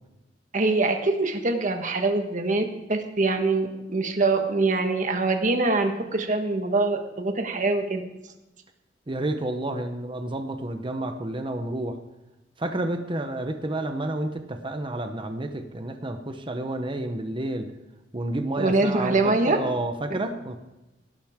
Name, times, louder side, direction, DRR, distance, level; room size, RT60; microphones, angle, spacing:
voice 1, 0.5-8.0 18.6-19.6 20.1-20.2, right 3 dB, 45° right, 5 dB, 1.4 m, -24 dB
voice 2, 9.1-12.0 12.6-17.7 18.1-20.6, right 1 dB, 30° right, 7 dB, 0.9 m, -30 dB
17.5 x 12.0 x 3.6 m, 1.0 s
head